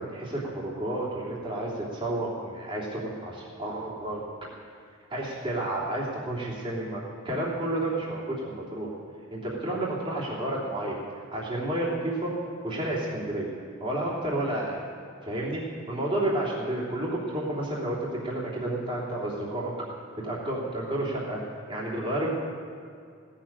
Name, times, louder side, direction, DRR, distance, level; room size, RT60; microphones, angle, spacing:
voice 1, 0.0-4.2 5.1-8.9 9.3-11.0 11.3-12.3 12.6-13.5 13.8-14.8 15.2-15.6 15.9-18.0 18.2-19.7 20.2-21.4 21.7-22.4, right 1 dB, 25° right, -6 dB, 3.1 m, -31 dB
17.0 x 7.4 x 8.9 m, 2.3 s
head